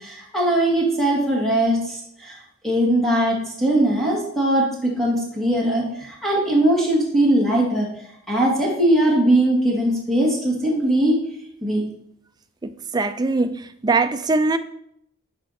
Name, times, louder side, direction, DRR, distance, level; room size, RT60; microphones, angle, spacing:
voice 1, 0.0-7.9 8.3-11.2 11.6-11.9, right 1 dB, ahead, 1.9 m, -20 dB
voice 2, 12.6-14.6, right 3 dB, 20° right, 0.4 m, -22 dB
12.0 x 4.8 x 4.2 m
head